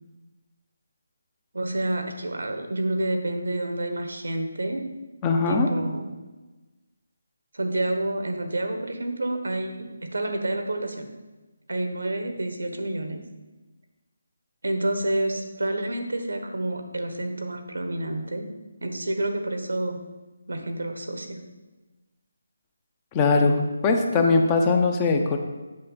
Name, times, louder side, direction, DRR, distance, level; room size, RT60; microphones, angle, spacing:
voice 1, 1.5-4.8 5.5-6.1 7.5-11.1 11.7-13.2 14.6-18.5 18.8-20.0 20.5-21.4, right 1 dB, 85° right, 6 dB, 1.2 m, -29 dB
voice 2, 5.2-5.7 23.1-25.4, left 4 dB, 20° left, 4 dB, 0.7 m, -21 dB
7.5 x 5.7 x 4.2 m, 1.2 s
figure-of-eight pair, 160°, 0 cm